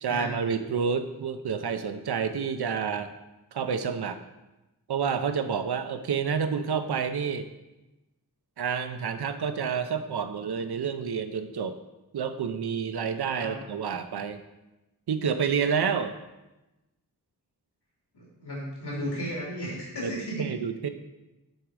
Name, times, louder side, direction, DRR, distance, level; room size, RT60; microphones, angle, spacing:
voice 1, 0.0-3.1 3.5-4.2 4.9-7.5 8.6-11.8 12.1-14.4 15.1-16.1 20.0-20.1 20.4-20.9, right 6 dB, 70° right, 9 dB, 0.7 m, -29 dB
voice 2, 18.1-20.5, equal, 80° left, -6 dB, 2.8 m, -34 dB
9.3 x 3.7 x 4.8 m, 1.0 s
cardioid pair, 50°, 40 cm